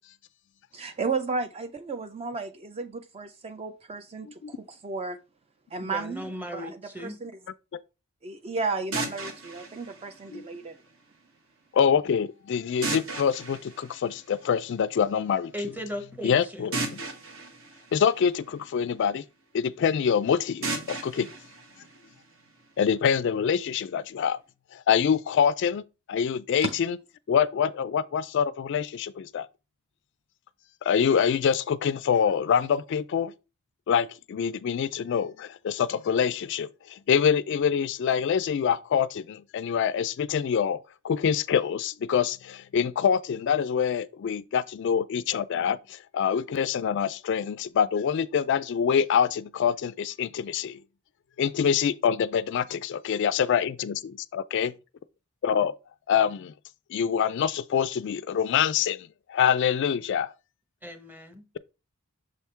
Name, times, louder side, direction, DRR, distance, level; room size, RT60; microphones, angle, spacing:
voice 1, 0.7-5.2 5.7-7.3 8.2-10.8 26.6-26.7, right 4 dB, 25° right, 0.4 m, -33 dB
voice 2, 5.8-7.2 15.5-16.7 60.8-61.5, equal, 10° right, 0.8 m, -37 dB
sound 1, 8.9-10.9 12.8-14.8 16.7-18.9 20.6-22.6, right 3 dB, 60° right, 1.2 m, -36 dB
voice 3, 11.7-15.5 16.2-17.0 17.9-19.2 19.5-21.3 22.8-24.4 24.7-25.8 26.1-27.0 27.3-29.5 30.8-33.3 33.9-40.8 41.0-50.8 51.4-54.7 55.4-55.7 56.1-56.5 56.9-60.3, left 7 dB, 55° left, 0.3 m, -25 dB
6.5 x 3.5 x 4.3 m
head